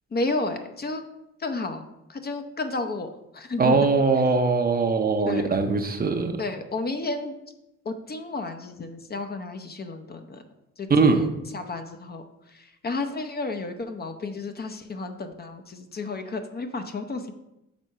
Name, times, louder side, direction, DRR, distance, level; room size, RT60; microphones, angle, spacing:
voice 1, 0.1-1.0 1.4-3.8 5.3-5.5 6.4-7.4 7.8-10.4 10.8-12.2 12.5-17.3, left 3 dB, 30° left, 6 dB, 0.7 m, -32 dB
voice 2, 3.6-6.4 10.9-11.2, right 4 dB, 30° right, 6 dB, 0.7 m, -21 dB
6.1 x 3.6 x 5.4 m, 0.90 s
cardioid pair, 90°, 30 cm